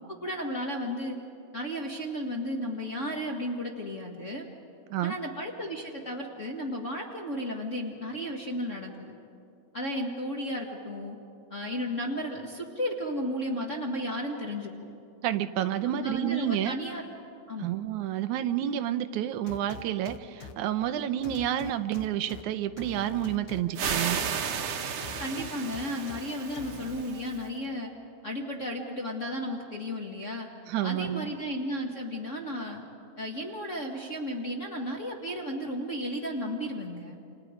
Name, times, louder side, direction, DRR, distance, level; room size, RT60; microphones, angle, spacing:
voice 1, 0.2-1.2 1.5-4.4 5.0-9.1 9.7-11.2 11.5-14.7 15.8-17.0 17.5-17.7 25.2-27.9 28.2-30.5 30.8-32.8 33.2-37.2, equal, 35° left, -2 dB, 1.3 m, -34 dB
voice 2, 15.2-16.8 17.6-24.2 30.7-31.3, right 11 dB, 80° right, 11 dB, 2.1 m, -29 dB
sound 1, 19.5-20.5 21.2-22.4 22.8-24.3 25.0-26.2 26.6-27.0, left 7 dB, 75° left, 2.4 m, -44 dB
sound 2, 23.7-27.4, right 7 dB, 65° right, 2.0 m, -33 dB
29.0 x 27.0 x 5.0 m, 2.6 s
omnidirectional pair, 3.4 m